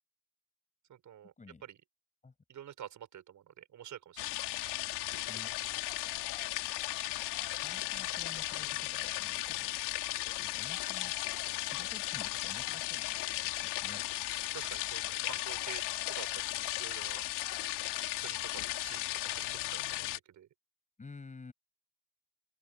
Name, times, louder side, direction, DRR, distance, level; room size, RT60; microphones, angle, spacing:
voice 1, 0.9-1.3 1.6-1.8 2.5-4.3 14.5-17.2 18.2-19.1 19.3-20.0 20.3-20.5, right 10 dB, 40° right, 7.2 m, -49 dB
sound 1, 4.2-20.2, left 16 dB, 55° left, 4.1 m, -36 dB
voice 2, 7.4-10.0 10.4-11.1 11.6-14.1 21.0-21.5, left 4 dB, 15° left, 7.2 m, -52 dB
open air
supercardioid pair, 125°, 47 cm